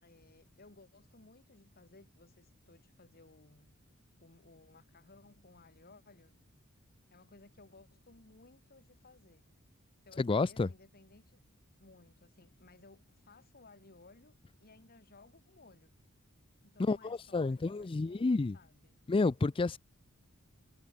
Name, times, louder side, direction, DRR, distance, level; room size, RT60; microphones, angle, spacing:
voice 1, 0.0-3.8 4.2-6.4 7.1-9.5 10.0-11.4 11.8-15.9 16.6-19.0, left 3 dB, 45° left, 2.0 m, -60 dB
voice 2, 10.2-10.7 16.8-18.6 19.1-19.8, left 3 dB, 25° left, 0.4 m, -30 dB
head